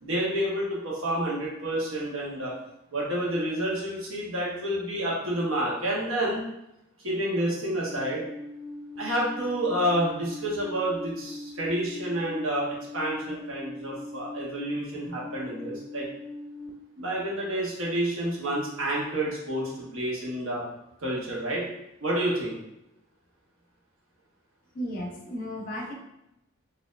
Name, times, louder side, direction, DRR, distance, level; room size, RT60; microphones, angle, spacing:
voice 1, 0.0-2.5 2.9-6.4 7.0-8.2 9.0-16.1 17.0-20.6 21.0-21.7 22.0-22.6, right 1 dB, 75° right, -4 dB, 1.0 m, -29 dB
Alarm, 7.8-16.7, left 2 dB, 85° left, 0.4 m, -41 dB
voice 2, 24.7-25.9, equal, 40° left, -1 dB, 0.6 m, -34 dB
4.2 x 2.6 x 2.5 m, 0.85 s
head